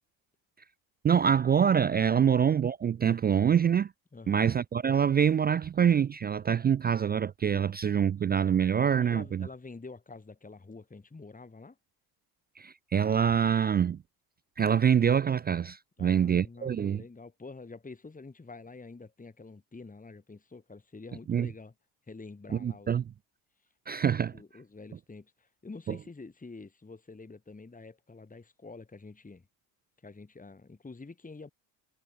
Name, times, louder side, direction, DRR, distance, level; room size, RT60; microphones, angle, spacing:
voice 1, 1.0-3.9 4.3-9.5 12.6-14.0 14.6-17.0 21.3-21.5 22.6-23.0 23.9-24.4, right 8 dB, 25° right, 0.3 m, -25 dB
voice 2, 4.1-4.5 9.0-11.8 16.0-21.7 22.1-22.9 24.3-29.5 30.0-31.5, left 3 dB, 15° left, 2.7 m, -47 dB
supercardioid pair, 70°, 48 cm